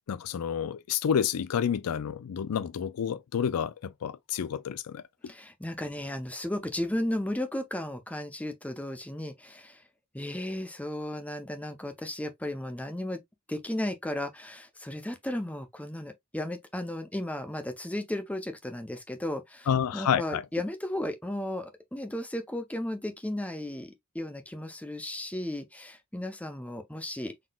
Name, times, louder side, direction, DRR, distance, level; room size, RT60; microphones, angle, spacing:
voice 1, 0.1-5.0 19.7-20.4, left 8 dB, 80° left, 0.4 m, -29 dB
voice 2, 5.3-9.8 10.1-13.2 13.5-27.3, left 1 dB, 5° left, 0.7 m, -35 dB
4.0 x 3.6 x 2.3 m
head